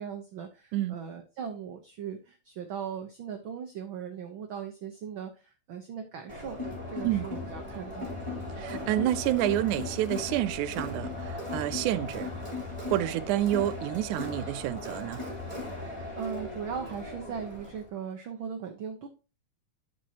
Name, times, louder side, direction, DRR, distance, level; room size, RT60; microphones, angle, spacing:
voice 1, 0.0-6.6 6.9-8.2 16.2-19.1, right 7 dB, 75° right, 1.1 m, -38 dB
Crowd, 6.3-17.8, left 2 dB, 10° left, 3.0 m, -37 dB
voice 2, 8.6-12.3 12.9-15.2, right 14 dB, 90° right, 2.1 m, -29 dB
11.5 x 5.2 x 2.8 m
omnidirectional pair, 3.4 m